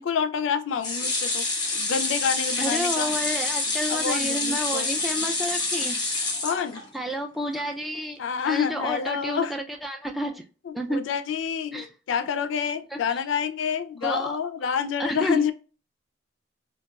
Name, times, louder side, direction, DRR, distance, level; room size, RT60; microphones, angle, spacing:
voice 1, 0.0-1.4 1.7-3.1 3.9-4.9 6.4-6.8 8.2-9.5 10.6-15.5, left 7 dB, 85° left, 0.3 m, -28 dB
sound 1, 0.8-7.1 7.5-7.6 7.9-8.0, left 3 dB, 20° left, 0.8 m, -27 dB
voice 2, 2.6-6.0 6.9-8.2 8.4-10.4 10.7-11.0 11.7-11.9 12.9-13.0 14.0-14.3 15.0-15.4, equal, ahead, 0.3 m, -30 dB
4.0 x 2.2 x 2.2 m
head